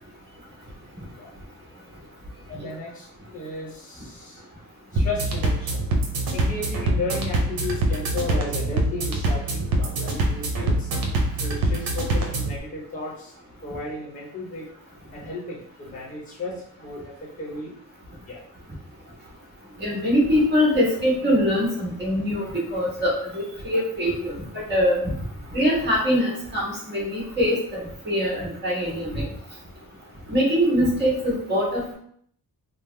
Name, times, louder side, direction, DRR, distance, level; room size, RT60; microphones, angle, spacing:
voice 1, 2.5-4.4 4.9-5.8 6.3-10.9 11.4-13.3 13.6-14.7 15.1-17.8 18.2-18.4, left 2 dB, 20° left, -4 dB, 0.9 m, -34 dB
sound 1, 5.0-12.6, right 2 dB, 80° right, 0.7 m, -24 dB
voice 2, 19.8-22.4 22.7-24.3 24.7-25.1 25.5-27.8 28.0-29.3 30.3-31.9, equal, 30° right, -5 dB, 1.4 m, -23 dB
3.4 x 2.0 x 3.3 m, 0.65 s
wide cardioid pair, 150°, 35 cm